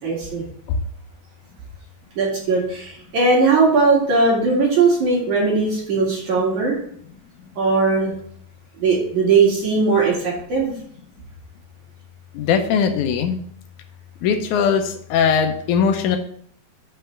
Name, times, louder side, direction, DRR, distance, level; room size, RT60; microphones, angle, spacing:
voice 1, 0.0-0.4 2.2-6.8 7.6-8.1 8.8-10.7, right 4 dB, 55° right, -3 dB, 3.2 m, -19 dB
voice 2, 12.3-13.4 14.2-16.2, left 7 dB, 85° left, 5 dB, 1.7 m, -20 dB
6.4 x 5.6 x 7.0 m, 0.62 s
omnidirectional pair, 4.5 m